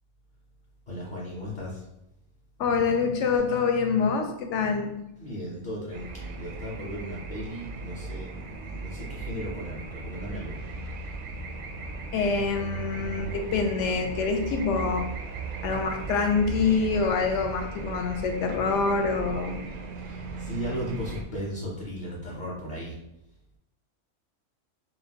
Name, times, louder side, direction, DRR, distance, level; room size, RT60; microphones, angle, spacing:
voice 1, 0.9-1.8 5.2-10.6 20.0-22.9, equal, 45° left, -6 dB, 0.8 m, -36 dB
voice 2, 2.6-4.9 12.1-15.1 15.6-19.7, left 5 dB, 70° left, 5 dB, 0.9 m, -26 dB
sound 1, 5.9-21.2, right 4 dB, 60° right, 0.5 m, -37 dB
5.8 x 2.2 x 2.8 m, 0.85 s
omnidirectional pair, 1.3 m